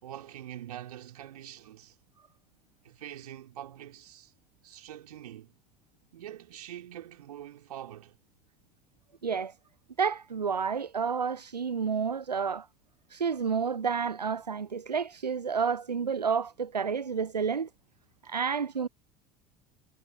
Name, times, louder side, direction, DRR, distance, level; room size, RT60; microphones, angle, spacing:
voice 1, 0.0-2.0 2.8-4.3 4.6-5.5 6.1-8.2, right 11 dB, 70° right, 4.6 m, -44 dB
voice 2, 9.2-9.5 10.0-12.7 13.1-17.7 18.2-18.9, right 6 dB, 85° right, 0.5 m, -30 dB
figure-of-eight pair, 70°, 20 cm